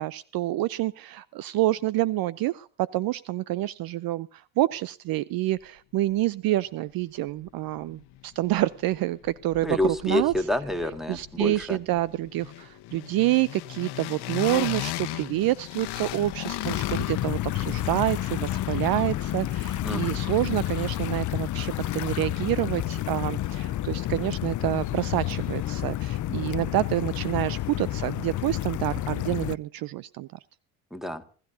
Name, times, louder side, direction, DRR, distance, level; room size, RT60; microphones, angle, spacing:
voice 1, 0.0-10.3 11.1-30.3, right 16 dB, 50° right, 20 dB, 0.6 m, -28 dB
sound 1, 7.4-7.5 7.8-9.0 9.2-21.4, left 15 dB, 60° left, 1.2 m, -38 dB
voice 2, 9.6-11.8 19.8-20.2 30.9-31.2, left 1 dB, ahead, 9 dB, 2.0 m, -28 dB
sound 2, 16.6-29.6, left 14 dB, 40° left, 0.7 m, -30 dB
26.5 x 13.0 x 2.7 m, 0.42 s
hypercardioid pair, 70°, 46 cm